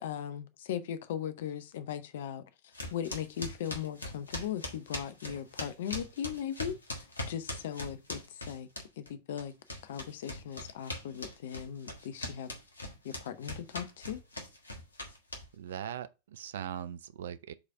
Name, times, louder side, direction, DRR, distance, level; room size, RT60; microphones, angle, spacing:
voice 1, 0.0-2.4 2.9-6.8 7.3-8.2 8.5-8.7 9.0-9.5 9.8-12.5 13.0-14.2, left 9 dB, 55° left, 0.7 m, -38 dB
sound 1, 2.7-9.1 9.4-15.7, left 1 dB, 75° left, 1.5 m, -41 dB
voice 2, 15.6-17.5, right 9 dB, 60° right, 0.4 m, -40 dB
4.9 x 4.1 x 5.8 m
figure-of-eight pair, 90°, 0 cm